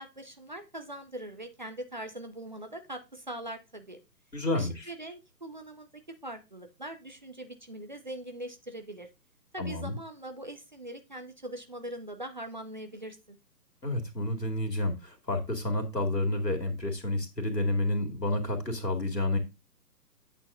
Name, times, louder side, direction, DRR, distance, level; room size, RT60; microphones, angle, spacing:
voice 1, 0.0-4.0 4.5-9.1 9.5-13.4, right 1 dB, 30° right, 6 dB, 0.5 m, -42 dB
voice 2, 4.3-4.9 9.6-10.0 13.8-19.4, left 1 dB, 85° left, 4 dB, 2.2 m, -30 dB
8.8 x 6.1 x 2.5 m, 0.25 s
figure-of-eight pair, 135°, 48 cm